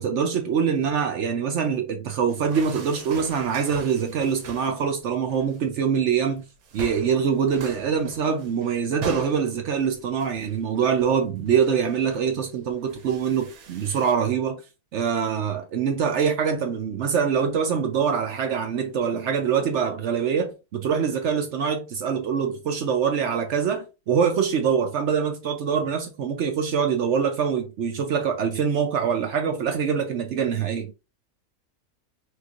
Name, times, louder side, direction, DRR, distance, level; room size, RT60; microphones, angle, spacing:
voice 1, 0.0-6.4 6.7-14.6 14.9-30.9, right 7 dB, 65° right, 0.8 m, -24 dB
sound 1, 2.3-4.8 5.1-5.6 6.1-6.3 6.6-14.1, right 5 dB, 85° right, 1.2 m, -41 dB
3.2 x 3.1 x 2.4 m
omnidirectional pair, 1.5 m